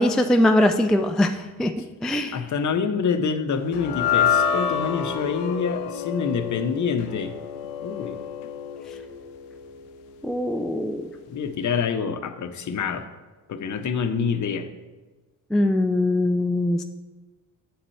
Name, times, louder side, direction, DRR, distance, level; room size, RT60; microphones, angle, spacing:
voice 1, 0.0-1.7 2.0-2.4 10.2-11.1 15.5-16.8, left 1 dB, ahead, 6 dB, 0.3 m, -21 dB
voice 2, 2.3-7.3 7.8-8.2 11.3-13.1 13.5-14.7, left 6 dB, 40° left, 9 dB, 0.8 m, -26 dB
sound 1, 3.7-10.1, left 7 dB, 80° left, 0.7 m, -28 dB
8.1 x 7.4 x 3.2 m, 1.3 s
hypercardioid pair, 55°, 46 cm